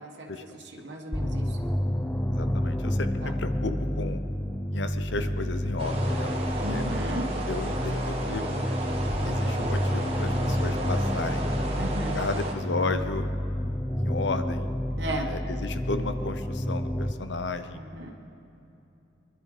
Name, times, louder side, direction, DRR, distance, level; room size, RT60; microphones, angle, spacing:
voice 1, 0.0-1.6 3.2-3.3 6.6-7.3 11.8-12.2 15.0-15.3 17.7-18.1, right 1 dB, 70° right, 0 dB, 1.6 m, -35 dB
sound 1, 1.1-17.1, equal, 10° left, 0.6 m, -29 dB
voice 2, 2.3-4.2 4.7-6.3 6.6-6.8 7.5-8.4 9.2-11.5 12.1-13.3 14.0-14.7 15.3-17.8, left 3 dB, 70° left, 9 dB, 0.8 m, -33 dB
sound 2, 5.8-12.5, right 1 dB, 30° right, 1.7 m, -34 dB
24.0 x 11.0 x 5.0 m, 2.8 s
head